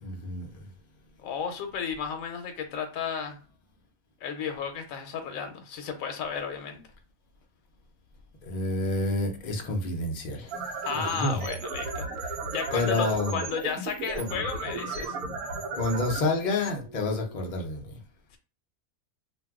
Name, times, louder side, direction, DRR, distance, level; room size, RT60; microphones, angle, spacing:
voice 1, 0.0-0.7 8.4-10.5 10.9-11.5 12.7-13.4 14.2-14.4 15.8-18.0, left 2 dB, 50° left, 0.5 m, -29 dB
voice 2, 1.2-3.4 4.2-6.8 10.8-15.4, left 6 dB, 75° left, 1.0 m, -33 dB
sound 1, 10.3-17.4, right 3 dB, 90° right, 1.1 m, -35 dB
2.5 x 2.3 x 3.5 m
omnidirectional pair, 1.5 m